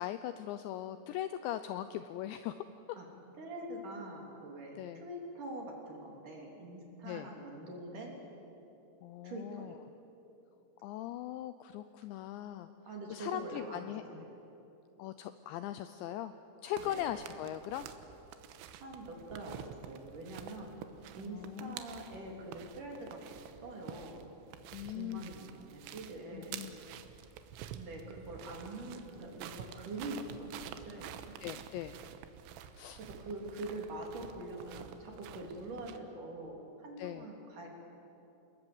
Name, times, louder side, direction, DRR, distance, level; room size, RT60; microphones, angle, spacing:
voice 1, 0.0-3.0 4.8-5.1 7.0-7.3 9.0-9.8 10.8-12.7 13.1-14.3 15.0-16.3 16.6-17.9 21.2-21.8 24.7-25.3 26.3-26.8 31.4-32.0 32.8-33.0 37.0-37.3, left 12 dB, 80° left, 11 dB, 2.6 m, -40 dB
voice 2, 3.3-8.2 9.2-9.8 12.9-14.3 16.8-17.1 18.7-20.9 21.1-24.3 24.8-26.7 27.7-31.3 33.0-37.7, right 2 dB, 45° right, 0 dB, 4.2 m, -44 dB
sound 1, 16.7-36.0, right 9 dB, 90° right, 3.7 m, -49 dB
28.0 x 20.5 x 7.9 m, 3.0 s
omnidirectional pair, 5.7 m